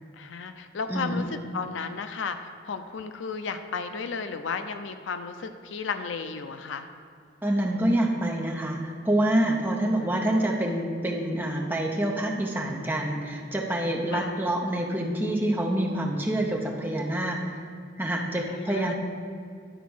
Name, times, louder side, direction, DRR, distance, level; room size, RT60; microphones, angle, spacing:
voice 1, 0.1-2.4 2.6-6.9 14.1-14.4 18.3-18.9, left 5 dB, 75° left, 9 dB, 0.5 m, -34 dB
voice 2, 0.9-1.2 7.4-17.5 18.0-18.9, right 1 dB, 10° right, 0 dB, 0.7 m, -27 dB
10.5 x 4.1 x 6.1 m, 2.3 s
head